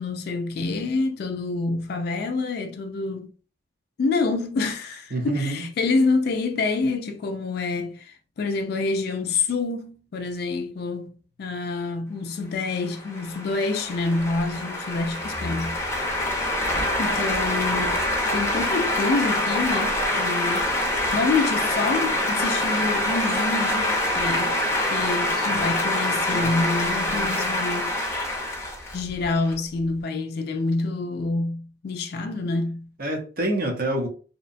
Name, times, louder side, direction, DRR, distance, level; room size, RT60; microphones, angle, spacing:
voice 1, 0.0-3.3 4.0-16.0 17.0-18.1 18.3-20.7 21.1-24.6 24.9-28.0 28.9-32.9, left 3 dB, 60° left, 0.3 m, -27 dB
voice 2, 5.1-5.7 25.3-25.7 26.3-26.5 33.0-34.1, right 1 dB, 55° right, 0.7 m, -27 dB
sound 1, 12.9-29.5, left 1 dB, 15° left, 0.6 m, -25 dB
2.8 x 2.1 x 2.5 m
head